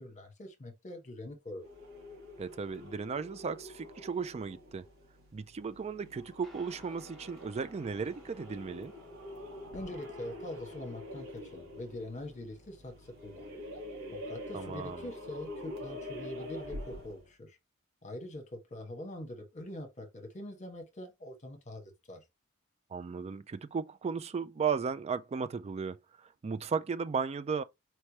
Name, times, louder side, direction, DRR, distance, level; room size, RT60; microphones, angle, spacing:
voice 1, 0.0-1.6 9.7-13.5 14.1-17.6 18.0-22.2, left 1 dB, 35° left, 1.2 m, -44 dB
sound 1, 1.6-17.3, left 1 dB, 75° right, 1.9 m, -46 dB
voice 2, 2.4-4.8 5.3-8.9 14.5-15.1 22.9-27.6, right 5 dB, 30° right, 0.3 m, -35 dB
Guitar, 6.4-16.0, left 1 dB, ahead, 1.0 m, -61 dB
4.5 x 3.2 x 2.9 m
head